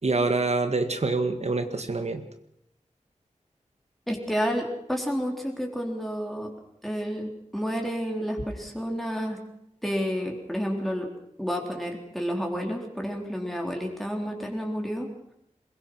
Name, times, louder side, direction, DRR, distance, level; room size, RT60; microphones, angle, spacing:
voice 1, 0.0-2.2, right 3 dB, 60° right, 7 dB, 1.8 m, -26 dB
voice 2, 4.1-6.5 6.8-9.4 9.8-11.1 11.4-15.1, equal, ahead, 1 dB, 3.9 m, -30 dB
22.0 x 22.0 x 6.1 m, 0.75 s
wide cardioid pair, 80°, 13 cm